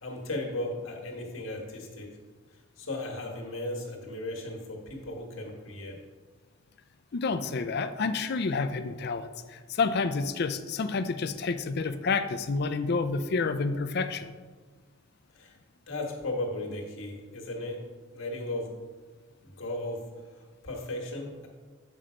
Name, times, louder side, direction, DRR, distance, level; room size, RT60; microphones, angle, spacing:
voice 1, 0.0-2.1 2.8-6.0 15.3-15.5 15.9-17.8 18.1-18.7 19.4-20.0 20.3-21.5, left 1 dB, 80° left, 1 dB, 1.7 m, -36 dB
voice 2, 7.1-14.3, left 4 dB, 55° left, 11 dB, 0.5 m, -29 dB
7.7 x 5.5 x 5.1 m, 1.4 s
head